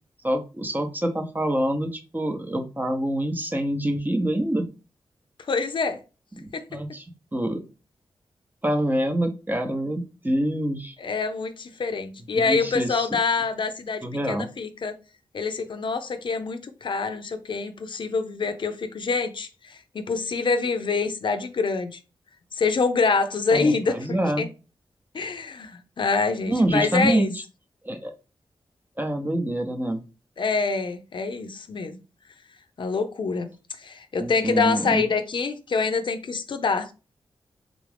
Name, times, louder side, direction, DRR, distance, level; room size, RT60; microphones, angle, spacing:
voice 1, 0.2-4.7 6.4-7.0 7.3-7.6 8.6-10.9 12.3-13.1 14.0-14.5 23.5-24.5 26.5-27.3 27.8-28.1 29.0-30.0 34.2-35.0, right 1 dB, 20° right, 0.7 m, -26 dB
voice 2, 5.5-6.0 6.5-6.6 11.0-14.9 15.3-22.0 22.5-24.0 24.4-24.5 25.1-27.3 30.4-32.0 32.8-33.5 33.8-36.9, left 4 dB, 60° left, 0.5 m, -26 dB
3.6 x 2.4 x 3.3 m
cardioid pair, 65°, 9 cm